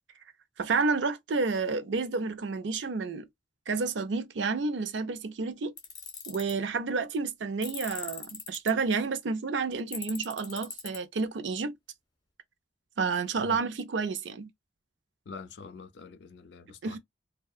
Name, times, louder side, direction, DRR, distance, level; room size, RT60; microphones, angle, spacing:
voice 1, 0.6-3.2 3.7-5.7 6.3-11.7 13.0-14.5 16.8-17.0, right 4 dB, 80° right, 0.5 m, -30 dB
Tools, 5.8-6.5 7.6-8.7 9.9-11.0, left 5 dB, 25° left, 0.7 m, -40 dB
voice 2, 15.3-17.0, left 5 dB, 65° left, 0.4 m, -45 dB
2.6 x 2.2 x 2.3 m
head